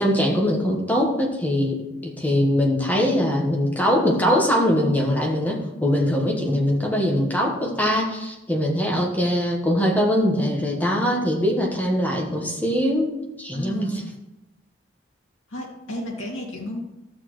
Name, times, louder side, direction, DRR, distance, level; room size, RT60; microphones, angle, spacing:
voice 1, 0.0-14.0, equal, 10° left, -1 dB, 1.2 m, -22 dB
voice 2, 13.5-14.0 15.5-16.8, left 1 dB, 80° left, -3 dB, 2.4 m, -33 dB
13.5 x 6.3 x 3.1 m, 0.94 s
head